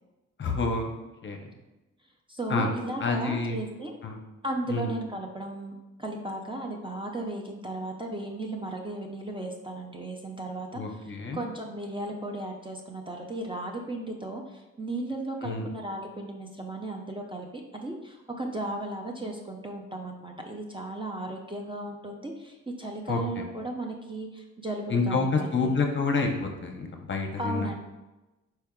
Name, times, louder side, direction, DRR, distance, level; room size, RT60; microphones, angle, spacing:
voice 1, 0.4-0.9 1.2-1.5 2.5-2.7 3.0-3.6 4.0-4.2 4.7-4.9 10.7-11.4 15.4-15.7 23.1-23.4 24.9-27.7, left 3 dB, 40° left, 3 dB, 0.6 m, -28 dB
voice 2, 2.3-4.0 4.4-25.7 27.4-27.7, right 1 dB, 15° right, 0 dB, 0.5 m, -35 dB
4.5 x 3.4 x 2.2 m, 1.1 s
cardioid pair, 65°, 31 cm